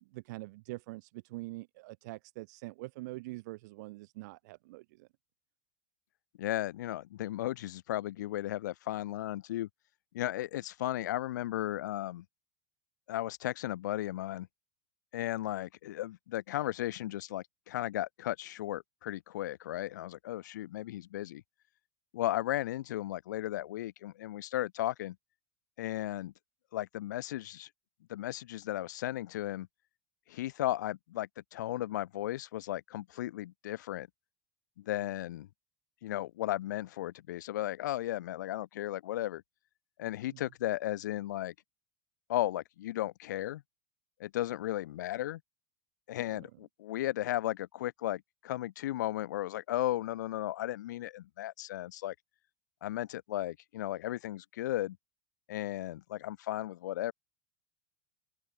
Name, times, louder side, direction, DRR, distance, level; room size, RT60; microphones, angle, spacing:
voice 1, 0.0-5.1 40.3-40.4 46.3-46.5, right 21 dB, 70° right, 6.9 m, -44 dB
voice 2, 6.4-9.7 10.1-12.2 13.1-14.5 15.1-21.4 22.1-25.2 25.8-26.3 26.7-27.7 28.1-29.7 30.3-34.1 34.9-35.5 36.0-39.4 40.0-41.5 42.3-43.6 44.2-45.4 46.1-52.1 52.8-55.0 55.5-57.1, left 14 dB, 80° left, 4.1 m, -35 dB
open air
hypercardioid pair, 95°, 10 cm